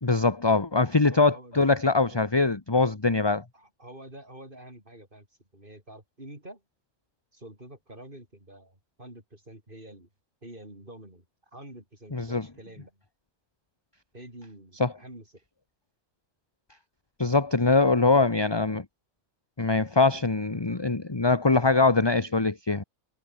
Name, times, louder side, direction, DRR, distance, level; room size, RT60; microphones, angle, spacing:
voice 1, 0.0-3.4 12.1-12.4 14.8-14.9 17.2-18.8 19.6-22.8, left 3 dB, 20° left, 1.3 m, -23 dB
voice 2, 1.1-1.6 2.1-2.2 3.5-5.3 5.5-6.6 7.3-10.1 10.4-11.2 11.5-13.0 14.1-15.3, right 1 dB, 40° right, 6.4 m, -47 dB
omnidirectional pair, 1.4 m